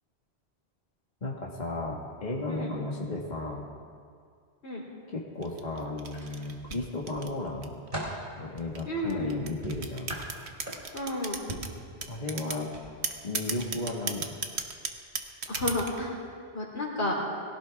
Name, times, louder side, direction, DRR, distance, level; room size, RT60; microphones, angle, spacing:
voice 1, 1.2-3.6 5.1-7.8 8.4-10.1 12.1-12.8 13.2-14.4, left 2 dB, 40° left, -2 dB, 1.8 m, -34 dB
sound 1, 5.4-7.9 8.6-11.7 12.0-12.6 13.0-16.0, right 5 dB, 75° right, 1.4 m, -35 dB
sound 2, 6.1-6.9 7.4-8.3 9.6-11.1 11.5-11.8 12.6-12.8 13.2-13.4, right 1 dB, 50° right, 3.8 m, -39 dB
voice 2, 8.9-9.4 10.9-11.4 15.5-16.1 16.5-17.1, left 1 dB, 75° left, -2 dB, 3.7 m, -31 dB
22.5 x 16.5 x 3.5 m, 2.2 s
omnidirectional pair, 1.1 m